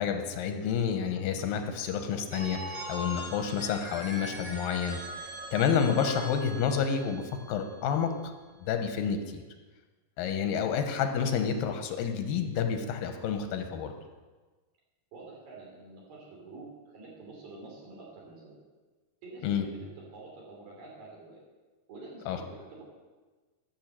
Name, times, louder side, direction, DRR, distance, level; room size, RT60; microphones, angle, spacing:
voice 1, 0.0-8.3 8.6-9.4 10.2-13.9 19.4-19.6 22.3-22.4, left 7 dB, 85° left, 6 dB, 2.7 m, -29 dB
Telephone, 2.3-8.1, right 1 dB, 35° right, 1.0 m, -41 dB
voice 2, 15.1-18.6 19.2-19.8 20.1-21.4 21.9-22.8, right 3 dB, 85° right, -3 dB, 4.9 m, -48 dB
12.0 x 5.8 x 7.5 m, 1.3 s
omnidirectional pair, 4.0 m